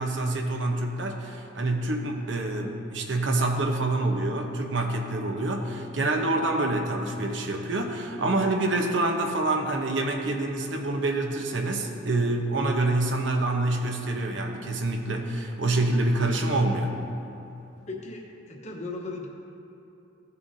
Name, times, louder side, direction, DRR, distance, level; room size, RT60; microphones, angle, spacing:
voice 1, 0.0-17.0, right 2 dB, 70° right, 2 dB, 0.9 m, -26 dB
voice 2, 17.9-19.3, left 3 dB, 35° left, -1 dB, 1.1 m, -37 dB
16.5 x 6.7 x 2.7 m, 2.9 s
head